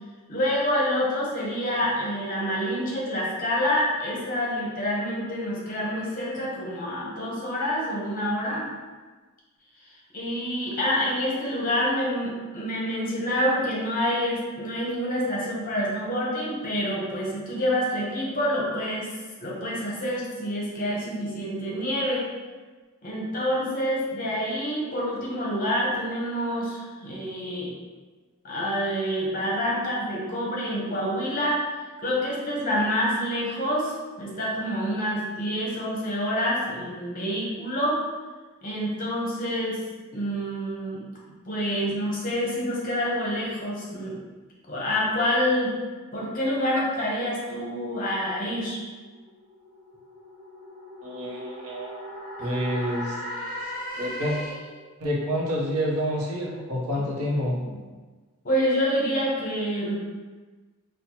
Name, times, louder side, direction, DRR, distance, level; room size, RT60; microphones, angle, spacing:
voice 1, 0.3-8.7 10.1-19.1 19.4-22.3 23.0-27.7 28.4-31.6 32.0-38.0 38.6-39.8 40.1-41.0 41.4-44.2 44.7-45.7 46.1-48.8 57.0-57.1 57.5-57.6 58.4-59.9, equal, 40° left, -4 dB, 0.9 m, -27 dB
sound 1, 48.8-54.8, equal, 40° right, 0.6 m, -38 dB
voice 2, 51.0-52.0 52.4-53.2 54.0-54.4 55.0-57.6, equal, 75° right, -3 dB, 0.8 m, -28 dB
4.4 x 2.2 x 2.8 m, 1.3 s
head